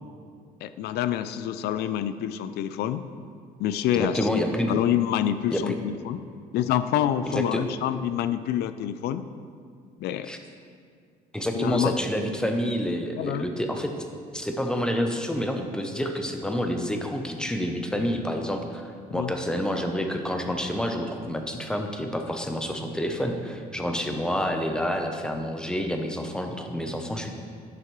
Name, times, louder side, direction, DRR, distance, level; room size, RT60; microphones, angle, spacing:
voice 1, 0.6-3.0 3.6-6.2 6.5-9.3 10.0-10.3 11.5-12.0 13.2-13.5 19.1-19.3, left 11 dB, 75° left, 12 dB, 0.4 m, -27 dB
voice 2, 3.9-4.7 5.5-5.7 7.3-7.6 10.3-10.4 11.3-13.9 14.3-27.3, equal, 5° left, 4 dB, 0.7 m, -28 dB
10.5 x 5.9 x 3.1 m, 2.1 s
cardioid pair, 110°, 17 cm